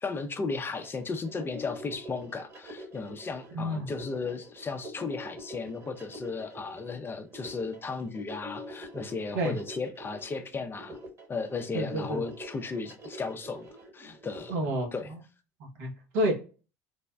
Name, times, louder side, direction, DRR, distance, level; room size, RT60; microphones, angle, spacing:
voice 1, 0.0-11.0 11.3-13.7 13.9-14.6 14.9-15.1, left 4 dB, 25° left, 0.4 m, -35 dB
sound 1, 0.8-14.5, equal, 35° right, 1.1 m, -45 dB
voice 2, 3.5-3.9 9.3-9.5 11.7-12.2 14.5-14.9 15.8-16.3, right 1 dB, 70° right, 0.9 m, -29 dB
3.3 x 2.1 x 2.2 m
hypercardioid pair, 70°, 9 cm